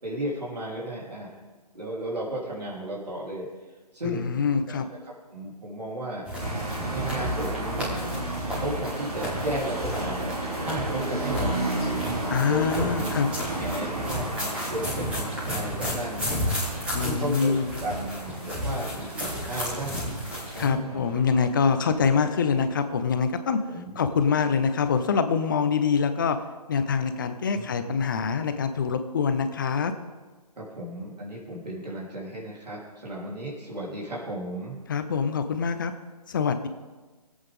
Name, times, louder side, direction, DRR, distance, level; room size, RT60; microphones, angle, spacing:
voice 1, 0.0-1.4 1.7-3.5 3.9-4.4 4.7-4.8 5.3-6.3 6.9-8.0 8.5-13.1 13.4-16.5 17.0-17.5 17.8-20.0 20.5-21.1 23.7-24.0 27.5-27.7 30.6-34.8, right 1 dB, 90° right, -5 dB, 3.6 m, -34 dB
voice 2, 4.1-4.9 12.3-13.3 16.9-17.7 20.6-23.6 23.9-26.4 26.7-29.9 34.9-35.9 36.3-36.7, left 6 dB, 30° left, 10 dB, 0.7 m, -25 dB
sound 1, 6.2-20.7, equal, 5° right, 2.0 m, -33 dB
sound 2, 6.4-22.8, right 2 dB, 65° right, 3.2 m, -34 dB
20.5 x 8.2 x 3.6 m, 1.3 s
figure-of-eight pair, 155°, 20 cm